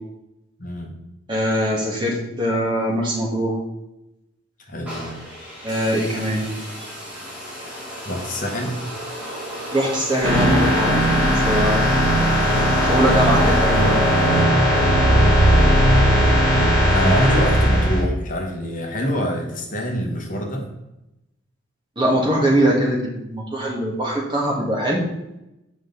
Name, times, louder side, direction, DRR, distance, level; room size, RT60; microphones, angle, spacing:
voice 1, 0.6-0.9 4.7-5.2 8.0-8.7 15.1-15.4 16.9-20.7, equal, 40° left, 1 dB, 1.2 m, -25 dB
voice 2, 1.3-3.5 5.6-6.5 9.7-11.0 11.4-11.9 12.8-14.0 22.0-25.0, right 1 dB, 25° right, -2 dB, 1.5 m, -22 dB
sound 1, 4.9-15.0, equal, 5° right, 2.0 m, -33 dB
sound 2, 10.2-18.0, equal, 15° left, 2.3 m, -17 dB
7.8 x 5.2 x 3.8 m, 0.91 s
head